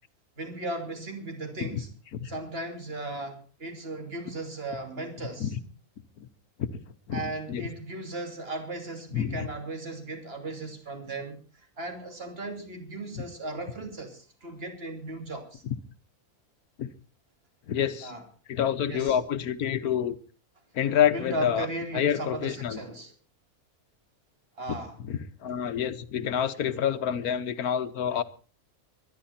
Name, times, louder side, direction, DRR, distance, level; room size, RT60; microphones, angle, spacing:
voice 1, 0.4-1.9 2.3-5.5 7.1-11.4 11.8-15.6 18.0-18.2 18.9-19.1 21.1-23.1 24.6-24.9, right 2 dB, 40° right, 3.2 m, -36 dB
voice 2, 7.1-7.7 9.1-9.5 13.1-13.2 15.6-15.8 16.8-16.9 17.7-18.1 18.5-20.2 20.7-21.7 21.9-22.8 24.7-24.8 25.1-28.2, left 9 dB, 80° left, 1.5 m, -28 dB
23.5 x 11.5 x 4.3 m
omnidirectional pair, 1.6 m